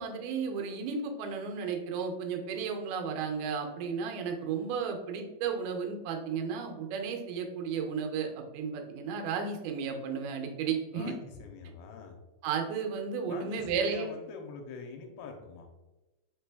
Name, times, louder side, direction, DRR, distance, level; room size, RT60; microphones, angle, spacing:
voice 1, 0.0-11.1 12.4-14.1, right 6 dB, 85° right, 3 dB, 2.6 m, -33 dB
voice 2, 10.9-12.2 13.3-15.7, left 5 dB, 85° left, 3 dB, 2.4 m, -44 dB
6.1 x 3.3 x 2.2 m, 1.1 s
omnidirectional pair, 4.3 m